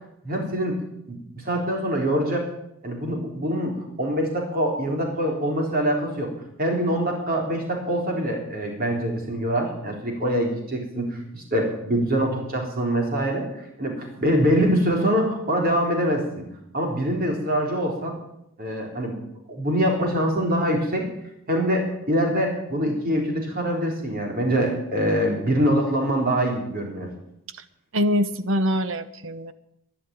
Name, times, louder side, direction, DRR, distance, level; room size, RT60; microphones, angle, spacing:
voice 1, 0.2-0.7 1.1-1.2 1.4-2.5 2.8-6.3 6.6-16.5 16.7-18.2 18.6-19.2 19.5-21.1 21.5-27.1, equal, 40° right, 0 dB, 4.0 m, -24 dB
voice 2, 27.9-29.5, equal, 60° right, 12 dB, 1.0 m, -24 dB
12.5 x 11.0 x 9.6 m, 0.79 s
head